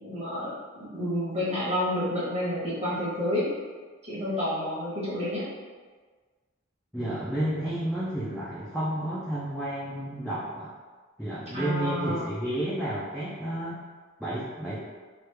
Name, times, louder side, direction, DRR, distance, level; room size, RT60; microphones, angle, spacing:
voice 1, 0.0-3.5 4.0-5.4 11.5-12.3, left 1 dB, 30° right, -8 dB, 1.0 m, -29 dB
voice 2, 6.9-10.7 11.2-13.9 14.2-14.8, right 1 dB, ahead, -10 dB, 0.4 m, -31 dB
3.0 x 2.4 x 3.3 m, 1.4 s
head